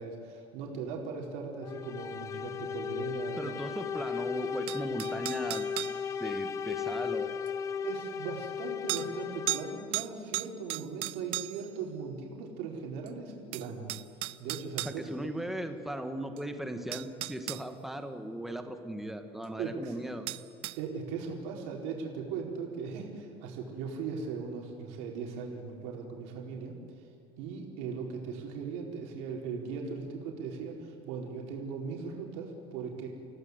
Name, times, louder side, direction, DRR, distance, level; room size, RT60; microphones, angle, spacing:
voice 1, 0.0-3.5 7.8-13.9 14.4-15.3 19.6-20.0 20.8-26.8 27.4-33.1, right 5 dB, 90° right, 0 dB, 4.4 m, -39 dB
sound 1, 1.6-10.0, left 7 dB, 25° left, 0.6 m, -36 dB
voice 2, 3.4-5.9 6.2-7.3 14.8-20.3, right 1 dB, ahead, 6 dB, 1.5 m, -38 dB
sound 2, 4.7-6.0 7.5-7.6 8.9-9.1 9.5-9.7 9.9-11.7 13.1-13.2 13.5-15.0 16.4-16.5 16.9-17.6 20.3-20.8, right 19 dB, 55° right, 0.6 m, -35 dB
29.0 x 16.5 x 8.1 m, 2.5 s
cardioid pair, 175°, 12 cm